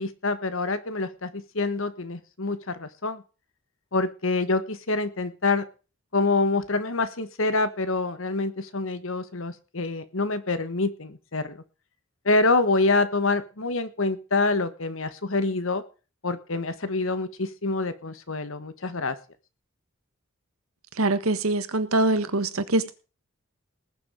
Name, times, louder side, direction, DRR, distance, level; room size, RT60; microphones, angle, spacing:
voice 1, 0.0-3.2 3.9-5.7 6.1-11.6 12.2-15.8 16.2-19.1, left 3 dB, 65° left, 13 dB, 1.4 m, -26 dB
voice 2, 21.0-22.9, right 2 dB, 80° right, 12 dB, 1.5 m, -23 dB
19.5 x 7.3 x 5.2 m, 0.35 s
head